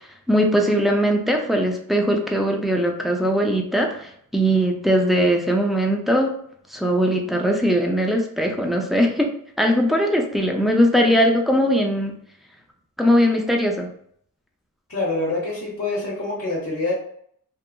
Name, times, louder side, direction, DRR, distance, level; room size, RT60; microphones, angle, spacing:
voice 1, 0.3-6.3 6.7-12.1 13.0-13.9, equal, ahead, 1 dB, 0.4 m, -20 dB
voice 2, 14.9-16.9, left 2 dB, 45° left, -4 dB, 0.8 m, -26 dB
2.8 x 2.3 x 2.3 m, 0.66 s
wide cardioid pair, 100°, 34 cm